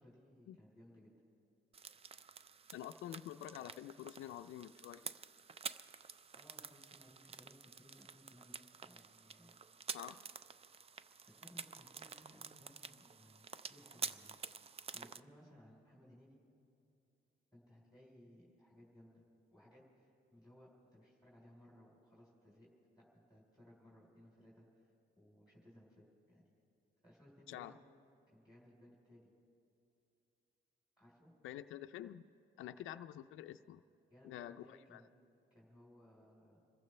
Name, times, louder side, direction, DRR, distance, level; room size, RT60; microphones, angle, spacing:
voice 1, 0.0-1.1 6.3-9.6 11.3-16.4 17.5-19.2 19.5-22.7 22.9-26.5 27.0-27.8 28.3-29.3 31.0-31.3 34.1-35.1 35.5-36.6, left 1 dB, 5° right, -5 dB, 3.8 m, -62 dB
sound 1, 1.7-15.2, right 6 dB, 30° right, 0.4 m, -49 dB
voice 2, 2.7-5.0 9.9-10.2 27.5-27.8 31.4-32.3 32.6-33.8 34.2-35.0, left 12 dB, 85° left, 9 dB, 0.4 m, -48 dB
26.0 x 15.0 x 3.3 m, 2.7 s
cardioid pair, 105°, 20 cm